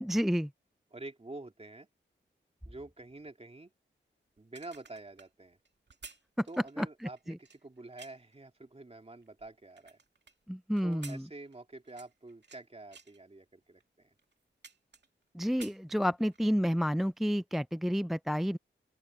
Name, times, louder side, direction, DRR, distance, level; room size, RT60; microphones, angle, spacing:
voice 1, 0.0-0.5 6.4-6.5 6.8-6.9 7.3-7.4 10.5-11.3 15.3-18.6, equal, ahead, 0.4 m, -30 dB
voice 2, 0.9-1.9 2.7-3.7 4.4-5.6 6.5-10.0 10.8-14.1, right 2 dB, 30° right, 2.8 m, -48 dB
sound 1, 4.4-8.4 8.9-10.3 10.8-12.6 12.9-13.2 13.8-13.9 14.2-15.2 15.5-16.5 16.8-17.0, right 4 dB, 60° right, 2.2 m, -53 dB
open air
cardioid pair, 45°, 20 cm